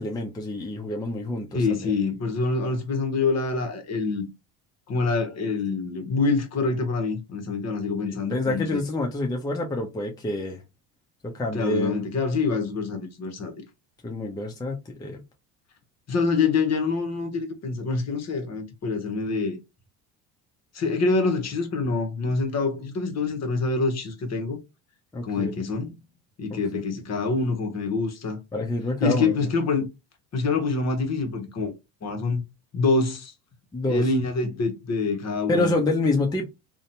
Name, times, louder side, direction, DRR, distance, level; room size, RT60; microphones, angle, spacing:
voice 1, 0.0-1.9 8.1-10.6 11.3-11.9 14.0-15.2 25.1-25.5 26.5-26.6 28.5-29.3 33.7-34.1 35.5-36.5, left 2 dB, 10° left, 0.5 m, -27 dB
voice 2, 1.5-4.3 4.9-8.8 11.5-13.6 16.1-19.6 20.7-24.6 25.2-25.9 26.4-28.4 29.0-29.9 30.3-31.7 32.0-32.4 32.7-33.3 33.9-35.7, left 4 dB, 40° left, 1.0 m, -26 dB
2.6 x 2.2 x 2.7 m
supercardioid pair, 80°, 43 cm